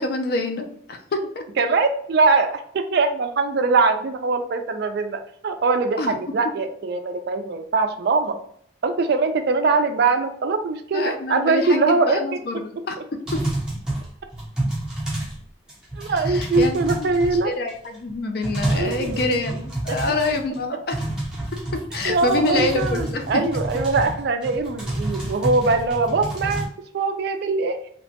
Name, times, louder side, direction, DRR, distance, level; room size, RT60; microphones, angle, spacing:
voice 1, 0.0-1.4 6.0-6.2 10.9-13.0 16.3-17.1 17.5-21.0 21.9-23.4, left 2 dB, 50° left, 5 dB, 0.4 m, -26 dB
voice 2, 1.6-8.4 8.8-12.2 16.0-17.5 18.7-19.3 19.9-20.0 22.1-26.7 26.9-27.8, right 3 dB, 55° right, 7 dB, 0.3 m, -22 dB
sound 1, 13.3-15.4 15.7-17.7 18.1-18.2 18.4-20.6 20.9-26.7, right 1 dB, 5° right, 0.5 m, -29 dB
2.8 x 2.1 x 2.7 m, 0.64 s
head